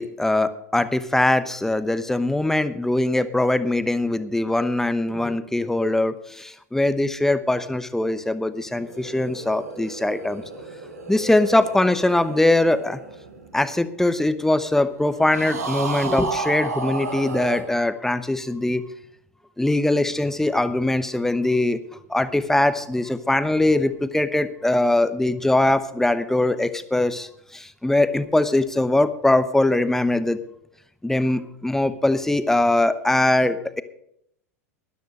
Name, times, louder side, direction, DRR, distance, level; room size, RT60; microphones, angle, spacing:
voice 1, 0.0-10.4 11.1-13.0 13.5-18.8 19.6-30.4 31.0-33.8, left 2 dB, 5° left, 13 dB, 0.9 m, -22 dB
sound 1, 8.6-14.2 15.3-17.6, right 3 dB, 85° right, 2.0 m, -33 dB
13.0 x 10.5 x 5.4 m, 0.73 s
hypercardioid pair, 90°, 8 cm